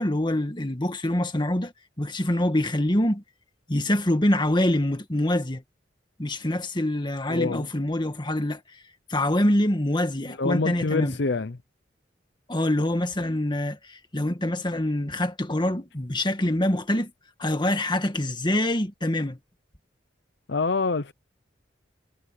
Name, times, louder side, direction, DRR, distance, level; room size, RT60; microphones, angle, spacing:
voice 1, 0.0-1.7 2.0-3.2 3.7-5.6 6.2-8.8 9.1-11.2 12.5-17.1 17.4-19.4, left 1 dB, 25° left, 1.8 m, -25 dB
voice 2, 7.3-7.7 10.3-11.6 20.5-21.1, left 3 dB, 65° left, 0.7 m, -26 dB
head